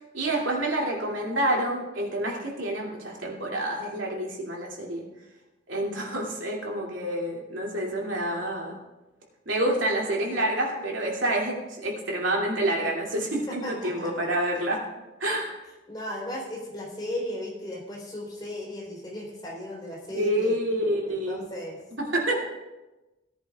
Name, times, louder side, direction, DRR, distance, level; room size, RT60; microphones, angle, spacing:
voice 1, 0.1-5.0 5.7-8.8 9.5-14.9 15.2-15.5 20.1-21.4 22.0-22.5, right 1 dB, 75° right, -2 dB, 2.7 m, -28 dB
voice 2, 13.5-14.1 15.9-20.6 21.1-21.8, left 1 dB, 20° left, -4 dB, 3.8 m, -36 dB
17.5 x 10.5 x 2.4 m, 1.1 s
head